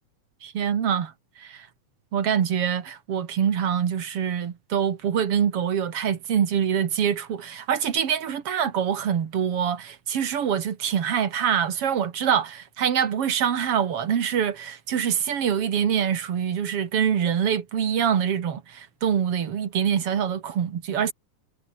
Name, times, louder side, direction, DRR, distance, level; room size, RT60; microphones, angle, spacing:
voice 1, 0.4-1.7 2.1-21.1, right 8 dB, 50° right, 2.5 m, -25 dB
omnidirectional pair, 3.7 m